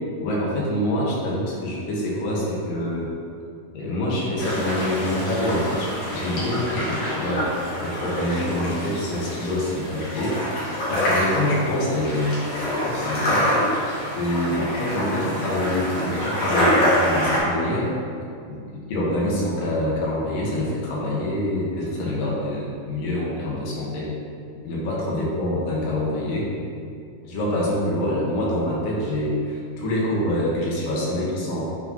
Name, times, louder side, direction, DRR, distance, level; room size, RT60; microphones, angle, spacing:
voice 1, 0.2-3.1 3.7-7.5 7.8-10.4 10.9-13.5 14.2-17.9 18.5-24.1 24.6-26.5 27.2-31.6, left 1 dB, 80° left, -5 dB, 3.1 m, -26 dB
sound 1, 4.4-17.4, equal, 60° left, 2.8 m, -26 dB
9.6 x 4.7 x 2.9 m, 2.4 s
omnidirectional pair, 3.8 m